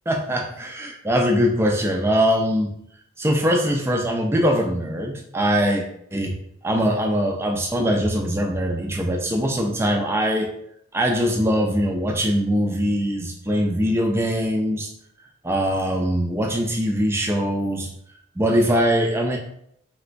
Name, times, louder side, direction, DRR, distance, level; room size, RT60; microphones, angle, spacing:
voice 1, 0.1-2.7 3.2-5.9 6.1-6.3 6.6-10.5 10.9-14.9 15.4-17.9 18.4-19.4, equal, 10° right, 2 dB, 0.3 m, -22 dB
3.3 x 2.9 x 2.5 m, 0.70 s
head